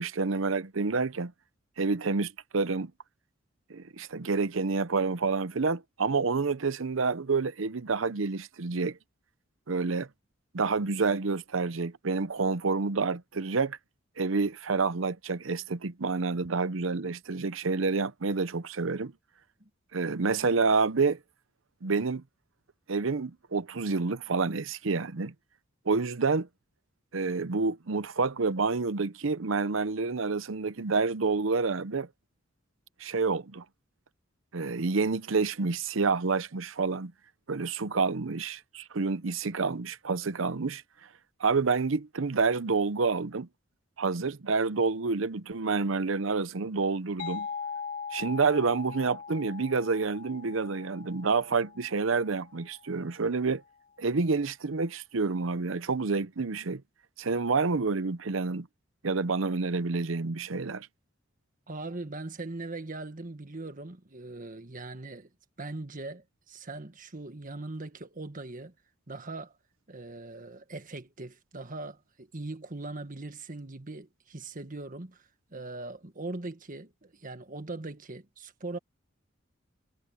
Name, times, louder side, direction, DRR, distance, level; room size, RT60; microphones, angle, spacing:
voice 1, 0.0-1.3 1.8-2.9 3.7-9.0 9.7-10.1 10.5-13.8 14.2-19.1 19.9-21.2 21.8-22.2 22.9-25.3 25.9-26.5 27.1-32.1 33.0-33.6 34.5-37.1 37.5-40.8 41.4-43.5 44.0-47.5 48.1-53.6 54.0-56.8 57.2-58.7 59.0-60.9, right 4 dB, 75° right, 0.8 m, -28 dB
sound 1, 47.2-52.7, left 5 dB, 45° left, 3.0 m, -41 dB
voice 2, 61.7-65.3 65.6-68.7 69.1-69.6 69.9-78.8, right 2 dB, 45° right, 1.6 m, -40 dB
head